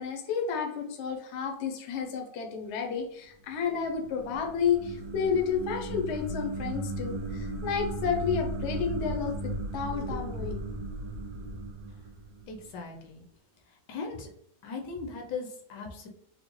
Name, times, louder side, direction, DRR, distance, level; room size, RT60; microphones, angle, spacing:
voice 1, 0.0-10.6, left 6 dB, 65° left, 2 dB, 0.7 m, -31 dB
sound 1, 3.5-12.8, right 1 dB, 75° right, 1.1 m, -36 dB
voice 2, 12.5-13.2 13.9-14.3 14.6-16.1, left 4 dB, 85° left, 2 dB, 1.3 m, -38 dB
3.7 x 2.1 x 3.0 m, 0.68 s
omnidirectional pair, 1.9 m